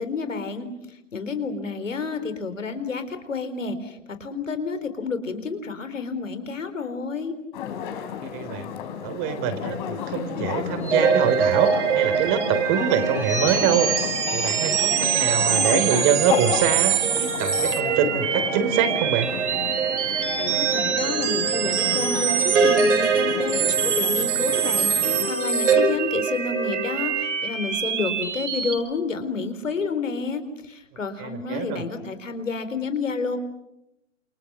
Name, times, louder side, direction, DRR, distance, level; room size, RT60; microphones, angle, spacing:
voice 1, 0.0-7.3 20.2-33.4, left 4 dB, 85° left, 9 dB, 4.2 m, -30 dB
sound 1, 7.5-25.3, left 8 dB, 40° left, 3.8 m, -33 dB
voice 2, 8.3-8.7 9.0-13.9 14.3-19.3 31.2-31.8, right 8 dB, 30° right, 9 dB, 3.8 m, -24 dB
sound 2, 10.8-28.7, right 6 dB, 70° right, 6.4 m, -23 dB
29.5 x 28.5 x 6.2 m, 0.82 s
hypercardioid pair, 140°, 37 cm